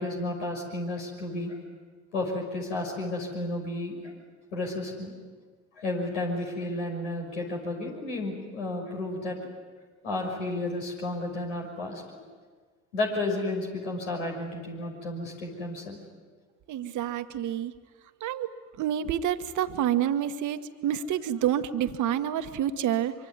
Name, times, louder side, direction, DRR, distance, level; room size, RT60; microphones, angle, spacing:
voice 1, 0.0-1.6 2.1-4.1 4.5-5.1 5.7-9.4 10.0-12.2 12.9-16.0, left 2 dB, 85° left, 0 dB, 6.1 m, -32 dB
voice 2, 16.7-17.7 18.2-18.5 18.8-23.1, right 10 dB, 55° right, 10 dB, 1.4 m, -28 dB
25.0 x 24.5 x 9.6 m, 1.5 s
hypercardioid pair, 60°, 36 cm